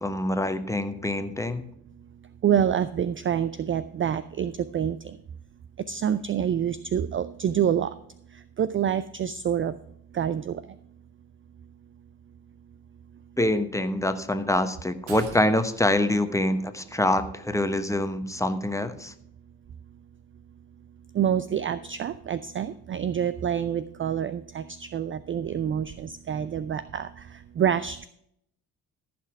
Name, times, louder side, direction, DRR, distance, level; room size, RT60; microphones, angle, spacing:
voice 1, 0.0-1.7 13.4-19.1, left 1 dB, 5° left, 9 dB, 1.1 m, -25 dB
voice 2, 2.4-5.0 5.9-7.9 8.6-9.7 10.1-10.6 21.1-27.1 27.6-28.1, right 9 dB, 30° right, 15 dB, 0.4 m, -27 dB
sound 1, 15.1-17.4 17.7-17.8, right 4 dB, 85° right, 1.1 m, -45 dB
14.5 x 6.0 x 4.8 m, 0.71 s
hypercardioid pair, 45°, 46 cm